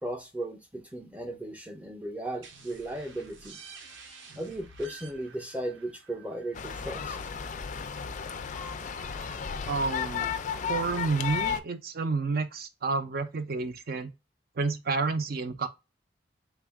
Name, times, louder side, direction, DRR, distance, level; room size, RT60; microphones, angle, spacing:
voice 1, 0.0-3.6 4.4-7.2, right 1 dB, 10° right, 0.6 m, -36 dB
sound 1, 2.4-7.9, right 5 dB, 85° right, 0.8 m, -51 dB
sound 2, 6.5-11.6, left 7 dB, 40° left, 0.4 m, -33 dB
voice 2, 9.7-10.4 10.7-14.1 14.6-15.7, right 4 dB, 50° right, 0.5 m, -30 dB
3.5 x 2.4 x 3.4 m
head